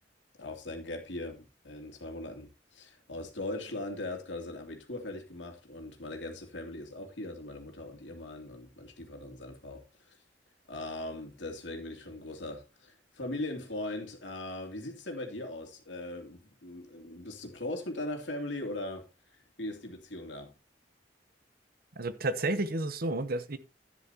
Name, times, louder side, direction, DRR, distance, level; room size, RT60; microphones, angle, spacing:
voice 1, 0.4-10.2 10.7-19.1 19.3-20.5, left 2 dB, 85° left, 2.8 m, -40 dB
voice 2, 22.0-23.6, right 2 dB, 55° right, 1.0 m, -31 dB
11.0 x 10.5 x 2.9 m
head